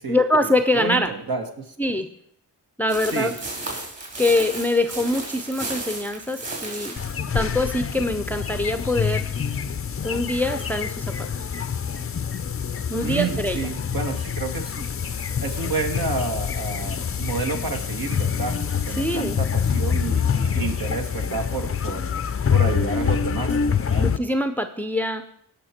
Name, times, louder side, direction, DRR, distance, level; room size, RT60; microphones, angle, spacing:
voice 1, 0.1-1.1 1.8-2.1 2.8-3.3 4.2-7.0 7.3-9.3 10.0-11.3 12.9-13.7 19.0-19.4 24.0-25.2, left 1 dB, 5° left, 8 dB, 0.7 m, -24 dB
voice 2, 0.7-1.7 3.1-3.3 13.0-14.9 15.4-18.6 18.9-22.1 22.5-23.6 23.9-24.0, right 4 dB, 55° right, 4 dB, 1.8 m, -29 dB
sound 1, 2.9-7.2, right 2 dB, 35° right, 3.7 m, -34 dB
sound 2, 7.0-24.2, left 7 dB, 30° left, 0.7 m, -26 dB
16.5 x 5.8 x 4.4 m, 0.70 s
supercardioid pair, 55°, 43 cm